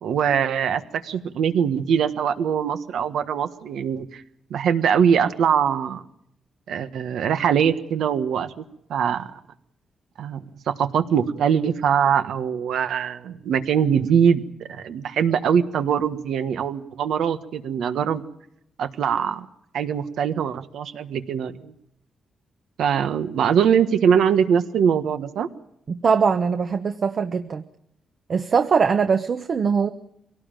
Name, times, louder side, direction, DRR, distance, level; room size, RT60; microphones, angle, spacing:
voice 1, 0.0-4.2 4.5-6.0 6.7-8.6 8.9-9.3 10.2-10.4 10.7-14.4 14.7-18.2 18.8-19.5 19.7-21.7 22.8-25.5, right 8 dB, 85° right, 9 dB, 1.5 m, -22 dB
voice 2, 25.9-27.6 28.3-29.9, right 5 dB, 50° right, 8 dB, 1.0 m, -21 dB
24.0 x 18.0 x 9.1 m, 0.78 s
cardioid pair, 95°, 0 cm